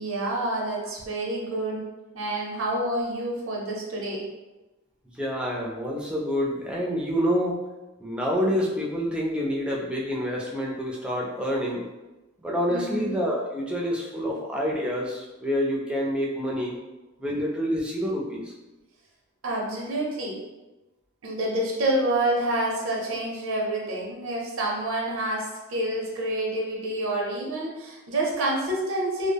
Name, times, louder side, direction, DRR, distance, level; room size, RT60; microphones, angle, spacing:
voice 1, 0.0-1.8 2.1-4.3 12.7-13.1 19.4-20.4 21.2-29.3, right 1 dB, 85° right, -2 dB, 0.6 m, -28 dB
voice 2, 5.2-7.6 8.0-11.8 12.4-16.8 17.2-18.5, equal, 5° right, -3 dB, 0.3 m, -27 dB
2.0 x 2.0 x 3.3 m, 1.1 s
head